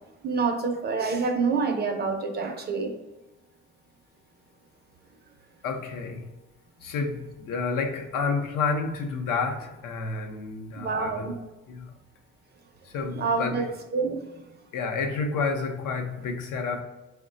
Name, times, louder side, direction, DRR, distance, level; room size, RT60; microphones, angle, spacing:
voice 1, 0.2-2.9 10.8-11.4 13.1-13.7 13.9-14.4, right 4 dB, 35° right, 3 dB, 0.4 m, -27 dB
voice 2, 5.6-6.3 6.8-11.3 11.7-11.9 12.9-13.7 14.7-16.8, left 4 dB, 80° left, 4 dB, 0.7 m, -30 dB
4.8 x 2.2 x 3.8 m, 1.1 s
cardioid pair, 180°, 31 cm